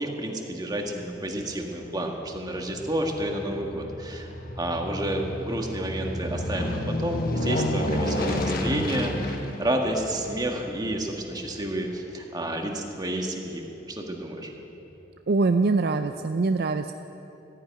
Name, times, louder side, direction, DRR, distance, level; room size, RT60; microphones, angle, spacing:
voice 1, 0.0-4.3 4.6-14.5, right 1 dB, 20° right, 2 dB, 1.5 m, -30 dB
Aircraft, 0.7-13.2 13.7-13.8, left 1 dB, 50° left, 1.4 m, -32 dB
voice 2, 15.3-16.9, right 3 dB, 55° right, 8 dB, 0.4 m, -23 dB
14.0 x 10.0 x 9.2 m, 3.0 s
head